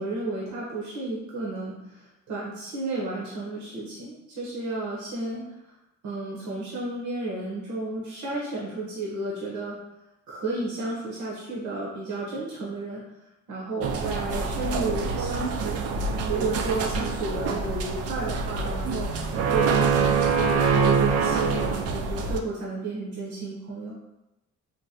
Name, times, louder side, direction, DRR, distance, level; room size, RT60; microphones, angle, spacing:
voice 1, 0.0-1.7 2.3-5.4 6.0-9.8 10.3-13.0 13.5-15.8 16.3-23.9, right 2 dB, 75° right, -5 dB, 1.0 m, -32 dB
sound 1, 13.8-22.4, right 5 dB, 55° right, 0.4 m, -25 dB
3.8 x 2.1 x 2.7 m, 0.94 s
cardioid pair, 90°, 30 cm